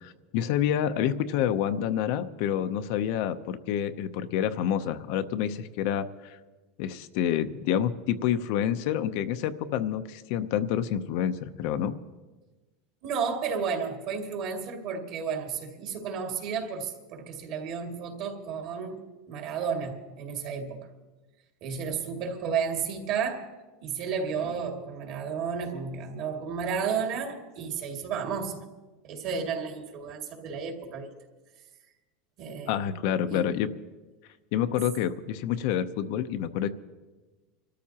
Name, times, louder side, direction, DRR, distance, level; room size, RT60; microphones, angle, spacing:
voice 1, 0.0-6.4 6.8-11.9 32.7-33.7 34.5-36.7, left 10 dB, 60° left, 10 dB, 0.7 m, -28 dB
voice 2, 13.0-19.0 19.3-20.9 21.6-23.5 23.8-28.6 29.0-31.1 32.4-32.9 33.3-33.4, right 6 dB, 50° right, 2 dB, 2.4 m, -32 dB
29.0 x 13.5 x 2.9 m, 1.2 s
supercardioid pair, 145°, 0 cm